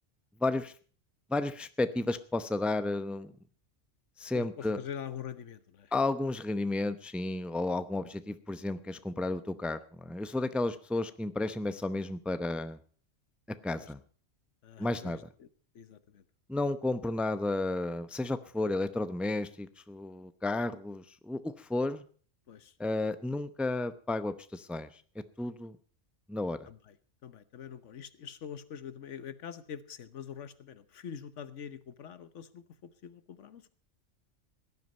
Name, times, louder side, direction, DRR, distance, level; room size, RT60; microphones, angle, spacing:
voice 1, 0.4-0.7 1.3-3.3 4.2-4.8 5.9-12.8 13.6-14.0 14.8-15.2 16.5-22.0 22.8-24.9 25.4-25.8 26.3-26.6, left 2 dB, ahead, 12 dB, 0.6 m, -32 dB
voice 2, 4.3-5.9 13.8-13.9 14.6-15.5 15.7-16.2 22.5-22.7 26.7-27.0 27.2-33.7, left 8 dB, 85° left, 14 dB, 1.3 m, -44 dB
17.0 x 11.0 x 5.4 m, 0.43 s
omnidirectional pair, 1.2 m